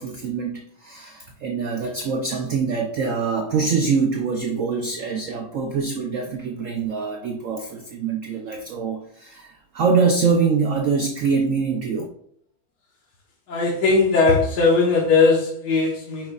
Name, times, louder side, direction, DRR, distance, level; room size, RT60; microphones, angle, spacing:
voice 1, 0.0-12.1, right 5 dB, 70° right, 3 dB, 0.7 m, -24 dB
voice 2, 13.5-16.3, left 4 dB, 60° left, -3 dB, 1.6 m, -19 dB
9.0 x 5.2 x 2.4 m, 0.66 s
omnidirectional pair, 2.1 m